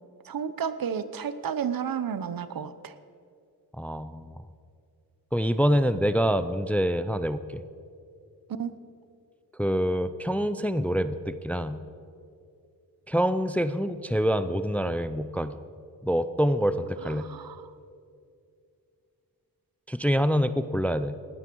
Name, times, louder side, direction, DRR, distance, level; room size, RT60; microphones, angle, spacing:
voice 1, 0.2-2.9 8.5-8.7 17.2-17.7, right 7 dB, 65° right, 13 dB, 0.8 m, -32 dB
voice 2, 3.7-4.4 5.3-7.6 9.5-11.8 13.1-15.6 16.0-17.3 19.9-21.2, equal, 5° left, 12 dB, 0.4 m, -26 dB
18.5 x 13.0 x 4.6 m, 2.4 s
wide cardioid pair, 105°, 37 cm